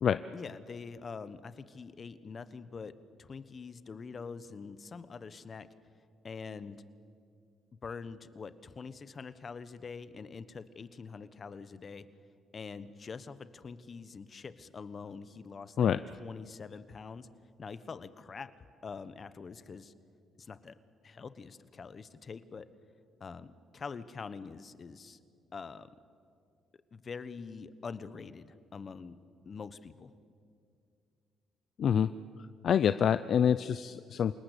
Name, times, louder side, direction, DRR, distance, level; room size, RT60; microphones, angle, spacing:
voice 1, 0.3-2.9 3.2-5.7 6.2-6.8 7.8-12.1 12.5-17.3 17.6-18.5 18.8-19.9 20.4-20.8 21.0-22.7 23.2-25.2 25.5-25.9 26.9-29.1 29.4-30.1, left 5 dB, 40° left, 14 dB, 1.2 m, -44 dB
voice 2, 31.8-32.1 32.6-34.3, left 8 dB, 60° left, 13 dB, 0.5 m, -26 dB
28.5 x 19.0 x 8.3 m, 2.3 s
cardioid pair, 90°, 0 cm